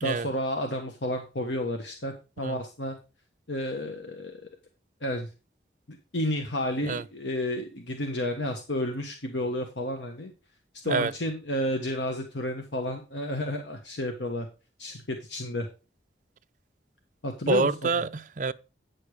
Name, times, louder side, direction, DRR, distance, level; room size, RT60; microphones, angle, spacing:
voice 1, 0.0-3.0 3.5-4.4 5.0-5.3 5.9-10.3 10.8-14.5 14.8-15.7 17.2-17.9, left 1 dB, 80° left, 1.3 m, -31 dB
voice 2, 17.5-18.5, right 4 dB, 45° right, 0.5 m, -27 dB
9.5 x 6.8 x 4.9 m
head